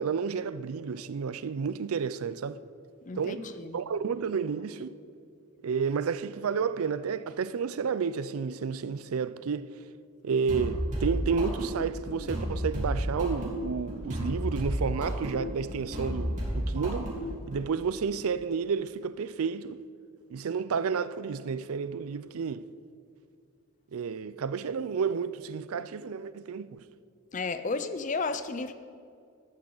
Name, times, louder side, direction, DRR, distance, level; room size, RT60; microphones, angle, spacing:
voice 1, 0.0-2.6 3.2-3.5 3.7-5.0 5.6-9.7 10.2-17.1 17.5-19.8 20.3-22.7 23.9-26.8, right 6 dB, 80° right, 0.4 m, -31 dB
voice 2, 3.0-3.8 27.3-28.7, left 4 dB, 35° left, 0.5 m, -33 dB
sound 1, 10.5-17.6, equal, 35° right, 3.5 m, -32 dB
13.5 x 12.5 x 3.9 m
head